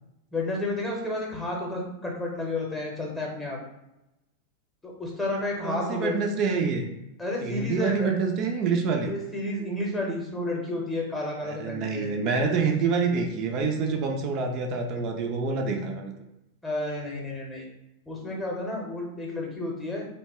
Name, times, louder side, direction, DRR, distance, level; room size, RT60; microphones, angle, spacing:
voice 1, 0.3-3.6 4.8-6.2 7.2-8.1 9.0-12.1 16.6-17.6 18.1-20.1, left 1 dB, 10° left, -2 dB, 0.8 m, -31 dB
voice 2, 5.6-6.9 7.4-9.1 11.4-16.1, right 4 dB, 40° right, 3 dB, 0.4 m, -27 dB
2.8 x 2.1 x 2.9 m, 0.91 s
figure-of-eight pair, 90°, 0 cm